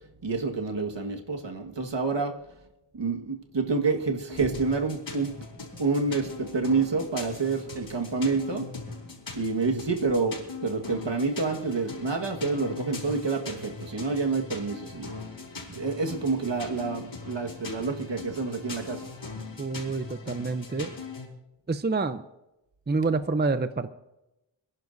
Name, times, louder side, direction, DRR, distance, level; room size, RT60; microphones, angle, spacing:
voice 1, 0.2-2.3 2.9-5.3 5.8-8.7 9.3-15.2 15.7-19.1, right 4 dB, 65° right, 1.7 m, -28 dB
sound 1, 4.3-21.3, left 3 dB, 70° left, 4.6 m, -41 dB
voice 2, 19.6-20.9 21.7-22.2 22.9-23.9, right 3 dB, 20° right, 0.6 m, -27 dB
28.0 x 11.0 x 2.7 m
wide cardioid pair, 60°, 46 cm